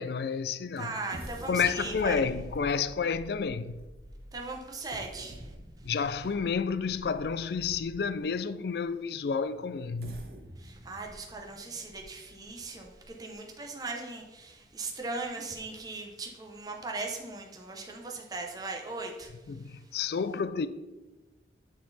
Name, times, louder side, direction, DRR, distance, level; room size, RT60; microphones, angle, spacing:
voice 1, 0.0-0.9 1.5-3.8 5.8-10.3 19.5-20.7, left 5 dB, 60° left, 0.4 m, -30 dB
voice 2, 0.8-2.2 4.3-5.5 10.6-19.3, right 3 dB, 20° right, 0.8 m, -39 dB
sound 1, 1.1-8.2 8.8-8.9 9.8-13.3 13.8-13.9 14.3-14.5, right 1 dB, 55° right, 0.8 m, -47 dB
9.2 x 3.9 x 4.0 m
head